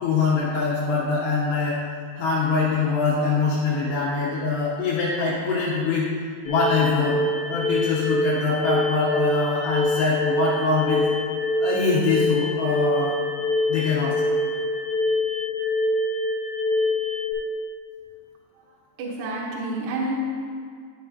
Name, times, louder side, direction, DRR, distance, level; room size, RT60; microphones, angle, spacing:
voice 1, 0.0-1.8 2.2-6.1 6.4-7.2 7.5-11.0 11.6-13.2 13.7-14.2, left 4 dB, 75° left, -6 dB, 2.9 m, -23 dB
sound 1, 6.4-17.3, left 2 dB, 55° left, 2.1 m, -25 dB
voice 2, 19.0-20.1, right 2 dB, 75° right, -3 dB, 3.0 m, -29 dB
11.5 x 6.9 x 2.8 m, 2.1 s
omnidirectional pair, 5.2 m